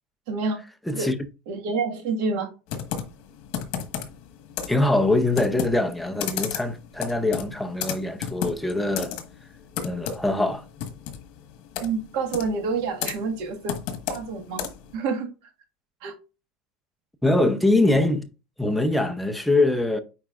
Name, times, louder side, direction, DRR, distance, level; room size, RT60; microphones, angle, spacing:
voice 1, 0.3-0.6 0.9-1.1 1.5-2.5 11.8-13.8 14.1-14.7 14.9-15.3 16.0-16.1, right 4 dB, 70° right, 1.7 m, -28 dB
voice 2, 0.9-1.2 4.7-9.1 9.8-10.6 17.2-18.3 18.6-20.0, left 2 dB, ahead, 0.6 m, -23 dB
Computer keyboard, 2.7-15.0, left 8 dB, 65° left, 1.4 m, -34 dB
8.7 x 4.6 x 2.5 m
cardioid pair, 150°, 3 cm